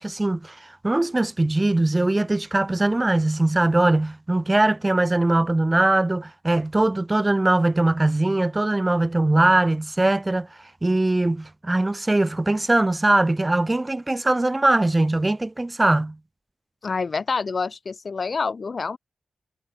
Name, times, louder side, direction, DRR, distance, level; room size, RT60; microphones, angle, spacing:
voice 1, 0.0-10.5 10.8-16.2, right 2 dB, 25° right, 0.5 m, -21 dB
voice 2, 16.8-19.0, left 4 dB, 55° left, 0.8 m, -27 dB
cardioid pair, 50°, 0 cm